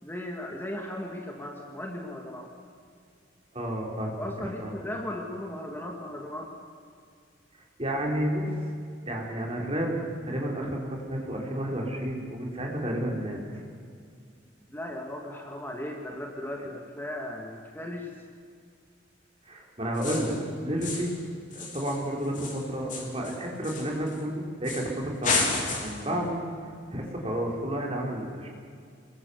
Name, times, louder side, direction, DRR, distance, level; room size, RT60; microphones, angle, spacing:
voice 1, 0.0-2.5 4.2-6.5 14.7-18.2, left 1 dB, 10° left, 1 dB, 2.0 m, -37 dB
voice 2, 3.5-4.7 7.8-8.7 9.1-13.7 16.6-16.7 19.5-20.3 20.6-21.1 21.5-26.4 26.9-28.5, right 1 dB, 30° right, -1 dB, 4.7 m, -31 dB
sound 1, 19.9-20.4 20.8-21.2 21.5-24.2 24.6-24.9 25.2-26.1, left 4 dB, 40° left, 4.1 m, -31 dB
26.0 x 21.5 x 8.2 m, 2.2 s
head